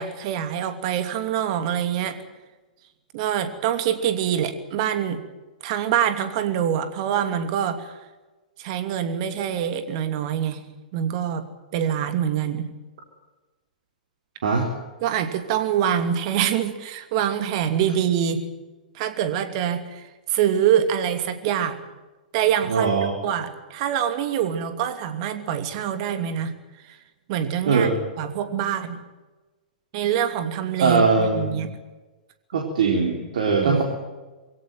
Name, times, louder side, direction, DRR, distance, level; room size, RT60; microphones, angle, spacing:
voice 1, 0.0-2.2 3.1-5.2 5.6-8.0 8.6-10.6 10.9-11.4 11.7-12.7 15.0-18.4 18.9-20.0 20.3-21.8 22.3-22.9 23.2-26.5 26.9-27.0 27.3-27.9 28.2-29.0 29.9-31.7 33.6-33.8, right 9 dB, 45° right, 9 dB, 2.8 m, -25 dB
voice 2, 22.7-23.1 27.7-27.9 30.8-31.6 32.5-33.8, right 4 dB, 60° right, 1 dB, 4.2 m, -21 dB
23.0 x 17.5 x 9.3 m, 1.2 s
figure-of-eight pair, 110°, 5 cm